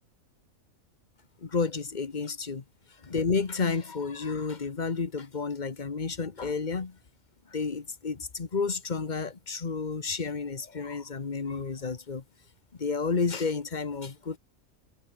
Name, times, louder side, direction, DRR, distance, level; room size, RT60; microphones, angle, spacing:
voice 1, 1.4-2.6 3.0-7.0 7.5-12.2 12.8-14.4, left 5 dB, 35° left, 1.3 m, -31 dB
omnidirectional pair, 1.5 m